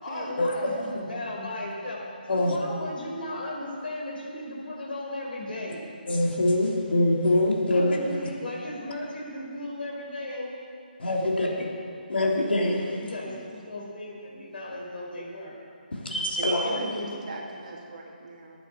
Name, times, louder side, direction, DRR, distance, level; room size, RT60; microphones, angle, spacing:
voice 1, 0.0-2.0 2.3-5.8 7.7-10.5 11.2-11.7 12.9-15.5 16.6-17.2, left 1 dB, 65° left, -2 dB, 4.1 m, -36 dB
voice 2, 6.1-8.0 11.0-11.5 12.1-12.9 15.9-16.8, left 1 dB, 90° left, -1 dB, 2.8 m, -24 dB
voice 3, 13.3-13.6 16.4-18.6, right 3 dB, 45° right, -1 dB, 2.2 m, -38 dB
21.5 x 9.1 x 4.4 m, 2.5 s
hypercardioid pair, 170°, 5 cm